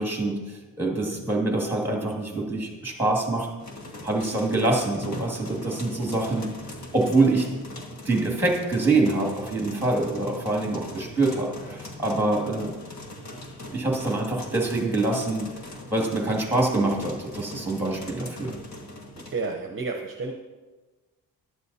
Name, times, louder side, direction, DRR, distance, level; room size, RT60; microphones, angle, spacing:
voice 1, 0.0-3.5 4.0-6.5 6.9-7.5 8.0-12.7 13.7-15.5 15.9-18.5, right 2 dB, 5° right, 0 dB, 2.4 m, -25 dB
sound 1, 3.6-19.5, left 1 dB, 45° left, 1.7 m, -41 dB
voice 2, 19.1-20.3, right 4 dB, 35° right, 3 dB, 0.8 m, -32 dB
15.5 x 11.0 x 2.8 m, 1.2 s
cardioid pair, 140°, 37 cm